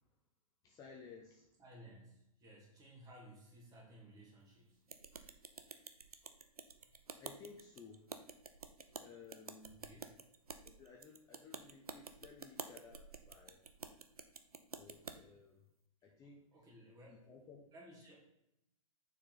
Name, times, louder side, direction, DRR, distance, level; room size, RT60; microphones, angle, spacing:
voice 1, 0.6-1.5 7.1-8.1 9.0-9.9 10.6-13.6 14.8-15.6 16.0-16.5 17.1-17.7, left 5 dB, 20° left, 0 dB, 0.7 m, -57 dB
voice 2, 1.6-4.8 9.9-10.1 16.5-17.3 17.7-18.2, right 1 dB, 20° right, -2 dB, 2.0 m, -58 dB
sound 1, 4.9-15.2, right 5 dB, 85° right, 0.6 m, -50 dB
6.6 x 4.5 x 3.8 m, 0.82 s
figure-of-eight pair, 115°, 19 cm